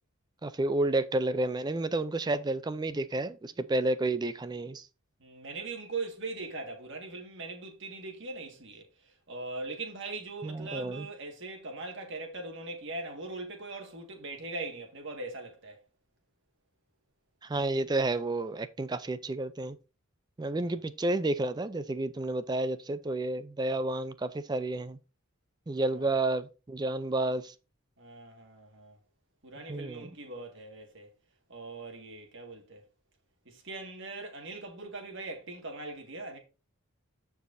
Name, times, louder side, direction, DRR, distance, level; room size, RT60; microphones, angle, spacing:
voice 1, 0.4-4.9 10.4-11.1 17.4-19.8 20.4-25.0 25.7-27.5 29.7-30.1, right 2 dB, 20° right, 0.3 m, -30 dB
voice 2, 5.2-8.8 9.3-15.8 20.6-20.7 25.9-26.1 28.0-29.0 29.4-31.1 31.5-32.8 33.5-36.4, right 3 dB, 55° right, 1.9 m, -40 dB
14.0 x 4.7 x 2.6 m
head